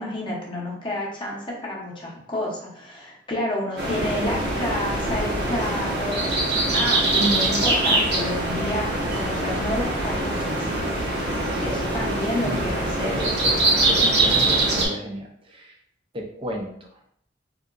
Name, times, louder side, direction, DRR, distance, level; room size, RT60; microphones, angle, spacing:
voice 1, 0.0-6.5 6.7-10.7 11.6-13.1, left 1 dB, 25° left, -3 dB, 0.8 m, -29 dB
sound 1, 3.8-14.8, right 2 dB, 65° right, 1.0 m, -23 dB
voice 2, 13.0-13.6 13.9-15.8 16.1-17.0, equal, 30° right, 2 dB, 0.6 m, -33 dB
3.7 x 2.8 x 2.5 m, 0.68 s
head